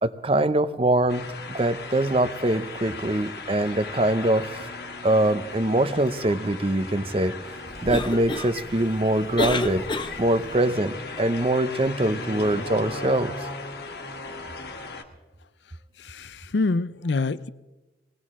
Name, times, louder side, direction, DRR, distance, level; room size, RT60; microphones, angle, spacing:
voice 1, 0.0-4.7 5.0-7.3 7.8-9.8 10.2-13.3, right 1 dB, 30° right, 0.7 m, -23 dB
sound 1, 1.1-15.0, left 3 dB, 65° left, 1.4 m, -37 dB
Cough, 7.7-10.6, left 2 dB, 25° left, 0.8 m, -30 dB
voice 2, 16.0-17.5, left 3 dB, 80° left, 0.6 m, -26 dB
21.0 x 17.5 x 3.7 m
head